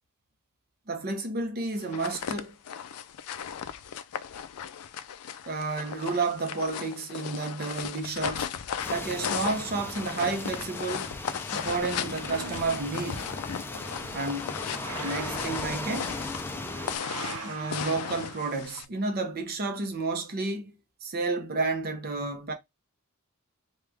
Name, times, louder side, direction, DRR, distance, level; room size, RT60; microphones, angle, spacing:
voice 1, 0.9-2.6 5.5-8.5 8.9-11.1 11.5-13.4 14.1-14.6 15.0-16.2 17.4-22.5, right 3 dB, 45° right, 0.8 m, -31 dB
sound 1, 1.8-18.9, left 8 dB, 80° left, 0.4 m, -36 dB
sound 2, 8.8-17.0, left 2 dB, 10° left, 0.4 m, -37 dB
sound 3, 11.8-18.6, right 4 dB, 80° right, 0.6 m, -43 dB
3.3 x 2.3 x 3.3 m
head